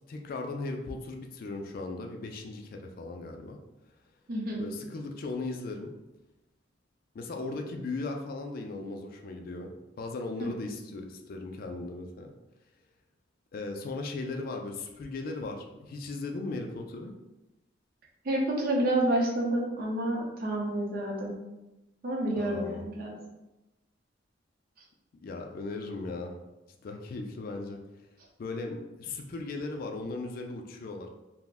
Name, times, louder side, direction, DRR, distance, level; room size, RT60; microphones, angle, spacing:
voice 1, 0.1-3.6 4.6-5.9 7.1-12.3 13.5-17.1 22.4-22.9 25.2-26.3 26.8-27.8 28.4-31.1, left 3 dB, 50° left, 3 dB, 0.3 m, -37 dB
voice 2, 4.3-4.7 10.4-10.5 18.2-21.4 22.0-23.2, right 1 dB, 50° right, -2 dB, 0.6 m, -29 dB
2.4 x 2.0 x 3.5 m, 0.99 s
head